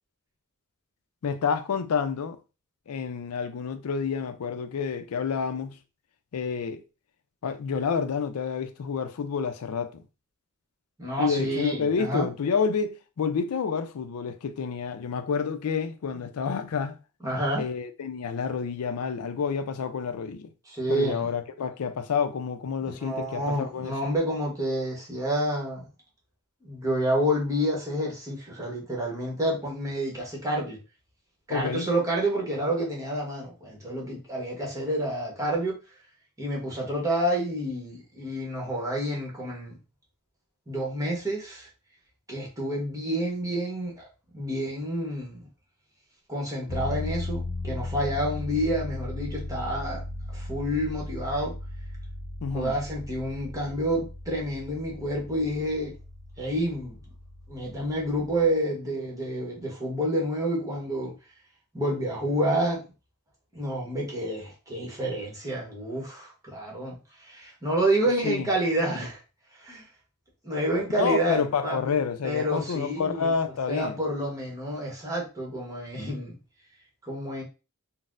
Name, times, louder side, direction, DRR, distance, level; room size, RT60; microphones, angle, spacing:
voice 1, 1.2-2.4 2.9-5.8 6.3-6.8 7.4-10.0 11.2-17.0 17.6-20.5 20.9-23.9 31.5-31.9 52.4-52.7 68.2-68.5 71.0-74.0, left 6 dB, 85° left, 0.4 m, -29 dB
voice 2, 11.0-12.3 17.2-17.7 20.7-21.3 22.8-25.9 26.6-30.8 31.5-35.8 36.4-39.8 40.7-41.7 42.3-44.0 44.3-45.4 46.3-50.0 50.3-51.5 52.5-55.9 56.4-57.0 57.5-61.1 61.7-62.8 63.5-69.2 69.6-69.9 70.4-71.9 72.2-73.3 73.7-76.4 77.0-77.4, right 1 dB, 15° right, 1.0 m, -29 dB
sound 1, 46.7-58.5, left 2 dB, 70° left, 0.8 m, -37 dB
4.0 x 2.0 x 2.5 m
head